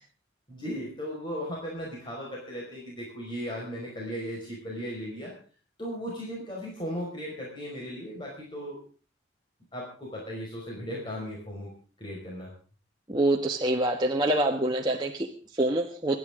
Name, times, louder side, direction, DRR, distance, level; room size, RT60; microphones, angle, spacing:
voice 1, 0.5-5.3 5.8-8.8 9.7-11.7 12.0-12.5, equal, 25° left, -3 dB, 5.1 m, -36 dB
voice 2, 13.1-16.2, right 1 dB, 20° right, 1 dB, 1.2 m, -26 dB
26.5 x 11.0 x 3.7 m, 0.39 s
head